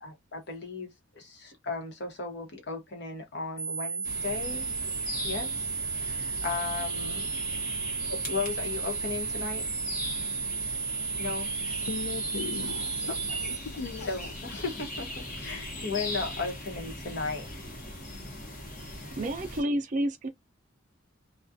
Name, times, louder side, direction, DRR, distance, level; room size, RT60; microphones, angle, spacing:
voice 1, 0.0-4.7 5.2-5.5 5.9-7.2 8.0-9.7 11.2-11.5 12.6-12.9 13.3-13.4 14.0-17.5, left 4 dB, 60° left, 1.0 m, -36 dB
sound 1, 3.6-13.6, right 5 dB, 15° left, 0.6 m, -33 dB
sound 2, 4.0-19.6, left 1 dB, 45° left, 0.9 m, -39 dB
voice 2, 11.9-14.1, left 5 dB, 80° left, 0.5 m, -38 dB
voice 3, 19.2-20.3, right 1 dB, 40° right, 0.4 m, -29 dB
2.4 x 2.3 x 2.5 m
head